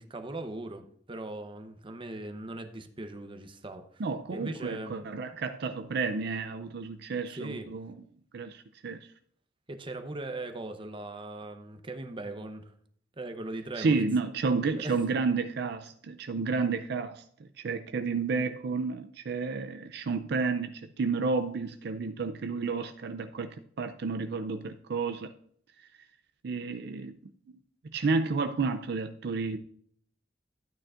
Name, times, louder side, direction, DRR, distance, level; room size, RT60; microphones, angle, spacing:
voice 1, 0.0-4.0 4.3-4.9 7.3-7.7 9.7-12.7 13.2-14.0 14.7-15.0, right 2 dB, 30° right, 0.8 m, -39 dB
voice 2, 4.0-7.9 8.3-9.1 13.8-17.2 17.6-25.3 26.4-27.2 27.9-29.6, right 4 dB, 65° right, 0.4 m, -31 dB
12.5 x 8.9 x 2.5 m
head